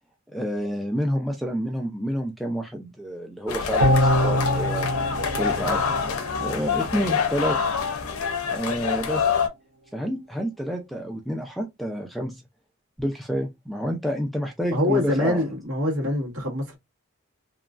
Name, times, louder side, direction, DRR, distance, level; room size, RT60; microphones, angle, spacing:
voice 1, 0.3-5.9 6.4-7.6 8.5-9.2 9.9-12.4 13.0-15.5, equal, ahead, 0.3 m, -29 dB
sound 1, 3.5-9.5, left 6 dB, 75° left, 0.5 m, -26 dB
sound 2, 3.8-7.1 7.5-7.6, equal, 50° right, 0.9 m, -24 dB
voice 2, 14.7-16.8, left 1 dB, 70° right, 1.5 m, -24 dB
2.9 x 2.3 x 2.4 m
head